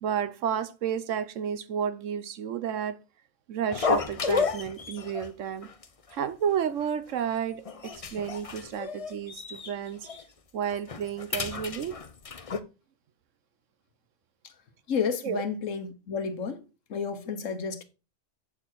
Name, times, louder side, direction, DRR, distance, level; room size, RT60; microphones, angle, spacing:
voice 1, 0.0-3.0 3.5-5.7 6.1-10.1 10.5-12.0 15.2-15.4, right 8 dB, 80° right, 1.1 m, -31 dB
sound 1, 3.7-5.3 5.6-5.8 6.1-6.2 6.8-7.3 7.6-9.7 10.0-10.2 10.7-12.6, left 5 dB, 35° left, 0.7 m, -32 dB
voice 2, 14.9-16.6 16.9-17.8, left 6 dB, 80° left, 1.5 m, -31 dB
8.4 x 6.8 x 4.5 m
omnidirectional pair, 1.3 m